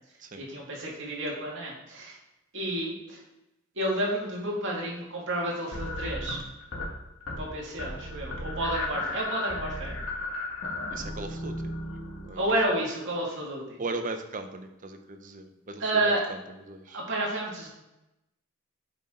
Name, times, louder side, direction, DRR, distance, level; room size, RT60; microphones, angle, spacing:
voice 1, 0.4-2.2 2.5-3.2 3.8-6.4 7.4-10.0 12.3-13.8 15.8-16.2 16.9-17.7, right 1 dB, 60° right, -3 dB, 2.3 m, -30 dB
sound 1, 5.7-6.9 7.2-7.5 7.8-12.5, left 2 dB, 85° left, 2.0 m, -35 dB
voice 2, 10.9-11.7 12.0-12.4 13.8-17.0, right 2 dB, 40° right, 7 dB, 0.7 m, -38 dB
8.1 x 5.9 x 3.8 m, 0.95 s
head